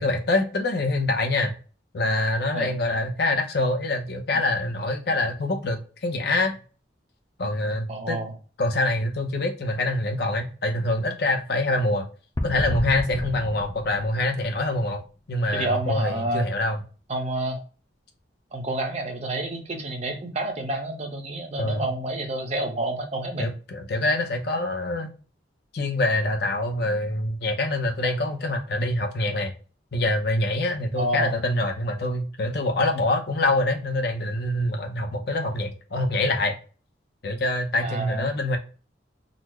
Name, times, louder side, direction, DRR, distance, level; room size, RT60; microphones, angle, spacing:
voice 1, 0.0-1.5 1.9-6.6 7.4-8.2 8.6-12.1 12.4-15.0 15.3-16.8 21.6-21.9 23.4-25.1 25.7-29.5 29.9-36.5 37.2-38.6, left 2 dB, 60° left, 4 dB, 0.7 m, -25 dB
voice 2, 7.9-8.3 15.5-16.4 17.1-17.6 18.5-23.5 31.0-31.4 37.8-38.3, right 1 dB, 35° right, 2 dB, 0.8 m, -29 dB
sound 1, 12.4-15.0, left 1 dB, 20° left, 0.4 m, -32 dB
3.9 x 2.1 x 2.9 m, 0.36 s
head